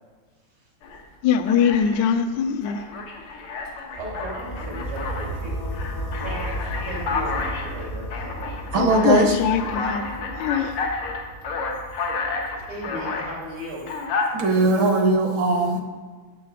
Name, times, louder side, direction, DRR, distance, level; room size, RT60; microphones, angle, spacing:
Alarm, 0.8-1.0 1.5-2.1 2.6-5.3 5.7-13.3 13.8-14.3, left 4 dB, 85° left, 2.2 m, -30 dB
voice 1, 1.2-2.8 8.7-10.1 10.4-10.8, left 7 dB, 70° left, 9 dB, 1.2 m, -22 dB
voice 2, 3.7-5.6 6.2-8.7 12.5-13.9, equal, 90° right, -4 dB, 4.1 m, -36 dB
sound 1, 3.9-13.9, equal, 40° left, 0.5 m, -34 dB
voice 3, 8.7-9.4 14.3-15.8, right 2 dB, 70° right, 4 dB, 1.9 m, -19 dB
11.0 x 7.5 x 4.8 m, 1.5 s
omnidirectional pair, 2.3 m